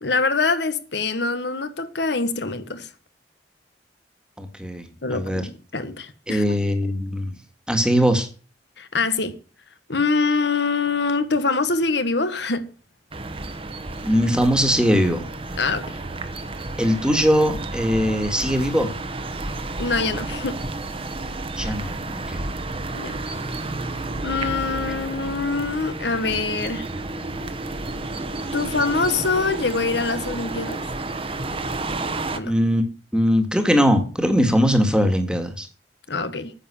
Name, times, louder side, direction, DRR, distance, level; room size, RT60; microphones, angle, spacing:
voice 1, 0.0-2.9 5.0-6.5 8.8-9.3 9.9-12.7 15.6-16.0 19.8-20.6 22.9-23.2 24.2-26.9 28.5-30.8 32.3-32.5 36.1-36.5, left 4 dB, 70° left, 1.4 m, -24 dB
voice 2, 4.4-4.9 5.1-5.4 6.3-7.3 7.7-8.3 14.0-15.3 16.8-18.9 21.6-22.5 32.4-32.8 33.1-35.7, equal, 5° right, 1.8 m, -20 dB
sound 1, 13.1-32.4, right 2 dB, 30° right, 1.2 m, -31 dB
10.0 x 7.7 x 7.1 m
head